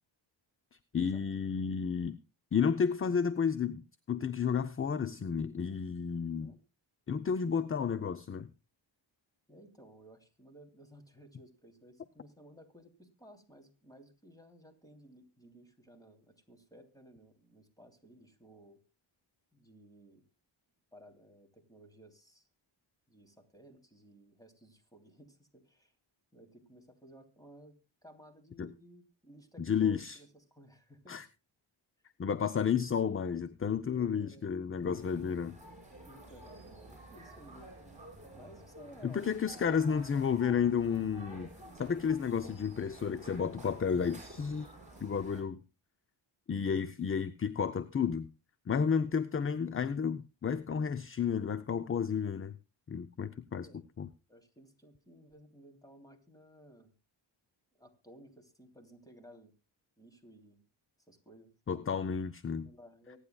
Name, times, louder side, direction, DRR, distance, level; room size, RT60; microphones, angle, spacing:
voice 1, 0.9-2.2 2.5-6.5 7.1-8.5 28.6-28.7 29.6-30.2 31.1-31.2 32.2-35.6 39.0-41.5 41.8-44.7 45.0-45.6 46.5-48.3 48.7-52.6 52.9-53.7 54.0-54.1 61.7-62.7, left 6 dB, 30° left, 0.6 m, -32 dB
voice 2, 6.1-6.6 9.5-18.8 19.5-20.2 20.9-22.5 23.1-25.9 26.3-31.2 33.2-33.5 33.9-34.6 36.0-37.7 38.3-39.7 47.0-47.2 53.5-53.8 54.3-56.9 57.7-59.5 60.0-60.6 61.1-61.5 62.6-63.2, right 1 dB, 5° left, 3.0 m, -57 dB
sound 1, 34.9-45.4, right 1 dB, 15° right, 6.6 m, -51 dB
24.0 x 10.0 x 2.3 m
cardioid pair, 85°, 48 cm